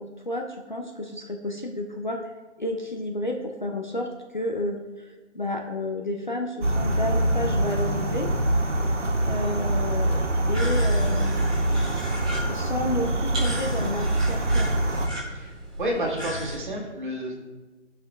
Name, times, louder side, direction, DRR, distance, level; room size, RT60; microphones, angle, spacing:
voice 1, 0.0-2.2 2.6-8.3 8.7-8.8 9.2-12.1 12.5-14.7, left 1 dB, 40° left, 1 dB, 0.5 m, -31 dB
sound 1, 6.6-15.1, right 1 dB, 75° right, 1.5 m, -24 dB
sound 2, 10.5-16.5, equal, 5° right, 1.1 m, -36 dB
voice 2, 15.3-17.4, right 1 dB, 45° right, -3 dB, 1.7 m, -30 dB
13.0 x 5.9 x 2.3 m, 1.2 s
figure-of-eight pair, 175°, 36 cm